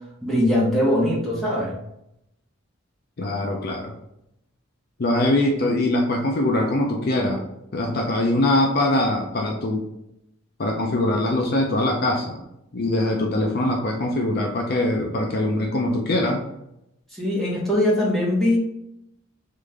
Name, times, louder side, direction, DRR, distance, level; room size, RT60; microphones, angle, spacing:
voice 1, 0.2-1.8 17.1-18.6, left 1 dB, ahead, -7 dB, 1.5 m, -21 dB
voice 2, 3.2-3.9 5.0-7.4 7.7-9.9 10.6-12.4 12.7-16.4, left 1 dB, 50° left, 1 dB, 0.6 m, -22 dB
3.9 x 3.7 x 3.4 m, 0.82 s
head